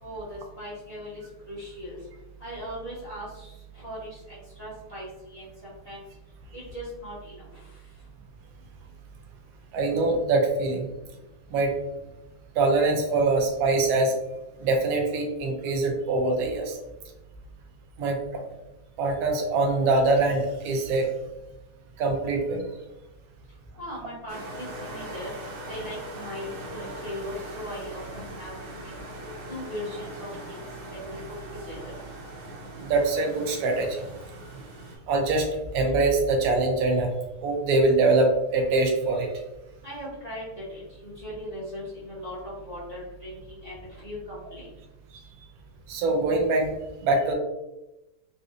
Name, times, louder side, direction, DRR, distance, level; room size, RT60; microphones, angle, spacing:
voice 1, 0.0-2.1 2.4-6.0 6.5-8.0 23.8-25.3 25.7-28.9 29.5-31.4 31.6-32.0 39.8-44.7, equal, 80° left, -9 dB, 0.3 m, -39 dB
voice 2, 9.7-10.9 11.5-11.7 12.6-14.1 14.6-16.8 18.0-18.4 19.0-21.1 22.0-22.6 32.8-34.1 35.1-35.5 35.7-37.1 37.4-39.3 45.9-46.7 47.0-47.3, right 3 dB, 75° right, 2 dB, 0.8 m, -23 dB
sound 1, 24.3-35.0, right 1 dB, 90° right, 1.7 m, -40 dB
3.8 x 2.7 x 2.4 m, 0.96 s
omnidirectional pair, 2.3 m